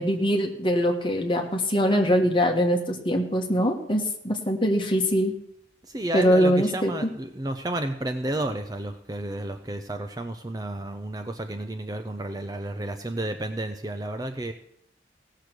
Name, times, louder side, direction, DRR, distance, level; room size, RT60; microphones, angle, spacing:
voice 1, 0.0-5.4 6.1-7.1, equal, 25° left, 3 dB, 1.5 m, -23 dB
voice 2, 5.9-14.5, right 1 dB, 20° right, 7 dB, 0.5 m, -31 dB
17.0 x 6.7 x 6.2 m, 0.74 s
head